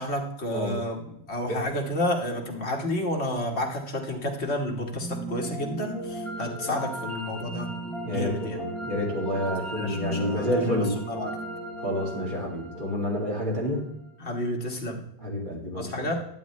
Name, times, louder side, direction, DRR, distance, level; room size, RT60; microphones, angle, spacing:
voice 1, 0.0-7.7 8.1-8.6 9.7-11.3 14.2-15.0 15.7-16.2, left 1 dB, 75° left, 1 dB, 1.7 m, -30 dB
sound 1, 4.8-13.9, right 1 dB, ahead, 4.3 m, -36 dB
voice 2, 8.0-11.0 11.8-13.9 15.2-16.1, left 1 dB, 45° right, -1 dB, 2.3 m, -29 dB
11.5 x 8.2 x 3.1 m, 0.75 s
omnidirectional pair, 1.1 m